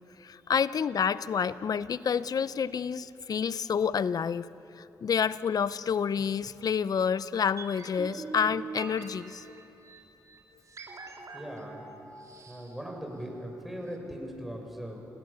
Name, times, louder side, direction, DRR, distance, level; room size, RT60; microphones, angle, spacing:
voice 1, 0.2-4.5 4.8-9.4, left 7 dB, 55° left, 16 dB, 0.7 m, -29 dB
sound 1, 7.6-13.6 13.9-14.0, right 3 dB, 45° right, 3.7 m, -44 dB
voice 2, 11.3-11.9 12.5-15.0, equal, ahead, 1 dB, 6.7 m, -39 dB
29.5 x 17.5 x 7.1 m, 2.9 s
supercardioid pair, 55°, 8 cm